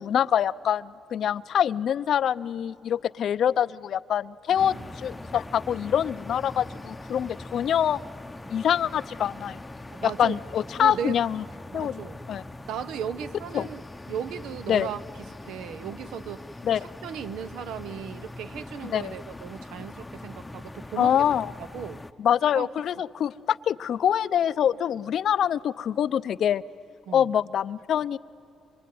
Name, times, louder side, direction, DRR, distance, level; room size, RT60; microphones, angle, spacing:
voice 1, 0.0-8.0 8.5-9.6 10.0-11.4 11.7-12.0 12.3-12.4 13.5-13.7 14.7-14.9 16.6-16.9 18.9-19.1 21.0-21.5 22.2-26.6 27.1-28.2, left 9 dB, 65° left, 16 dB, 0.5 m, -25 dB
voice 2, 4.5-4.9 9.9-10.4 10.8-11.2 11.7-12.3 12.7-13.8 14.1-15.0 15.4-16.5 16.8-21.2 21.7-22.0 22.5-22.7 27.1-27.3, right 8 dB, 85° right, 13 dB, 0.8 m, -36 dB
sound 1, 4.6-22.1, left 2 dB, 15° left, 0.7 m, -42 dB
25.0 x 25.0 x 9.4 m, 2.8 s
cardioid pair, 90°, 0 cm